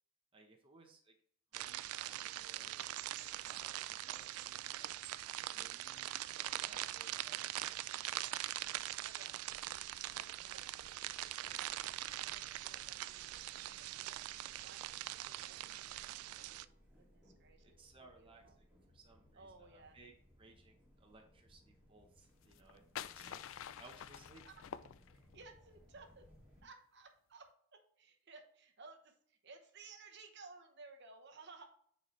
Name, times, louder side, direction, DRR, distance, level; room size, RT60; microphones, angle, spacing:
voice 1, 0.3-1.1 1.5-4.9 5.5-8.4 17.6-18.7 18.9-20.1 20.4-23.4 23.8-24.4, right 3 dB, 25° right, 1 dB, 0.8 m, -62 dB
sound 1, 1.5-16.6, right 14 dB, 85° right, 0.3 m, -43 dB
voice 2, 9.0-14.2 14.6-17.7 17.9-18.6 19.3-20.0 24.4-24.6 25.2-26.3 26.6-31.7, right 3 dB, 55° right, 5 dB, 0.9 m, -59 dB
sound 2, 9.4-26.6, left 1 dB, 10° right, 2.2 m, -66 dB
sound 3, 22.4-25.5, left 9 dB, 65° left, 0.3 m, -48 dB
9.6 x 4.2 x 3.1 m, 0.63 s
head